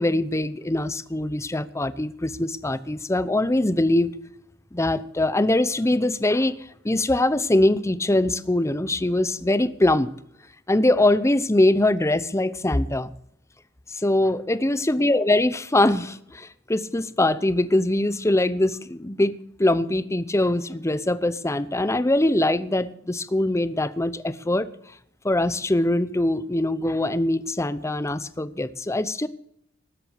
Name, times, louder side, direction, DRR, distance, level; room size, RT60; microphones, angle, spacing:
voice 1, 0.0-4.1 4.7-6.6 6.8-10.1 10.7-13.1 13.9-19.3 19.6-24.7 25.2-29.3, left 1 dB, 15° left, 15 dB, 0.7 m, -22 dB
19.5 x 8.1 x 6.4 m, 0.71 s
head